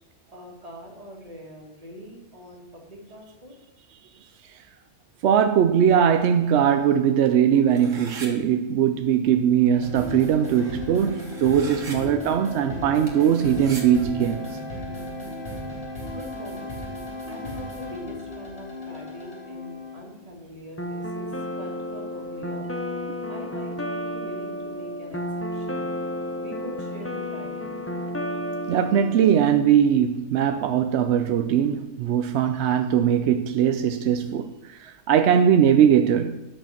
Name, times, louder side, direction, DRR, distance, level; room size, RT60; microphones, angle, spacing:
voice 1, 0.3-3.5 16.1-16.9 17.3-21.3 21.6-22.7 23.3-25.2 25.5-25.9 26.4-27.8, equal, 30° right, 2.3 m, -42 dB
voice 2, 5.2-14.5 28.7-36.4, right 8 dB, 65° right, 0.8 m, -20 dB
sound 1, 7.7-8.3 9.7-9.8 10.0-12.0 13.1-13.8, right 3 dB, 85° right, 2.2 m, -41 dB
sound 2, 9.7-20.1, left 1 dB, 50° left, 3.0 m, -35 dB
sound 3, 20.8-29.5, equal, 15° left, 0.7 m, -32 dB
10.0 x 6.7 x 5.8 m
omnidirectional pair, 1.3 m